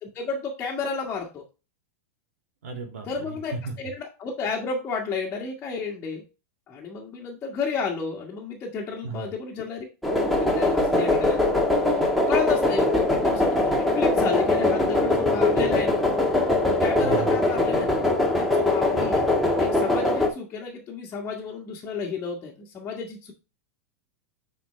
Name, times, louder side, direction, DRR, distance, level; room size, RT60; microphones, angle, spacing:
voice 1, 0.0-1.4 3.1-6.2 6.7-9.8 10.4-12.0 12.3-16.0 16.7-17.9 18.3-19.3 19.6-23.3, left 5 dB, 25° left, -2 dB, 1.7 m, -32 dB
voice 2, 2.6-3.7 9.0-9.3 17.0-17.4, right 4 dB, 85° right, 3 dB, 2.6 m, -35 dB
sound 1, 10.0-20.3, left 2 dB, ahead, 1.6 m, -22 dB
9.3 x 4.6 x 3.3 m, 0.31 s
supercardioid pair, 135°, 8 cm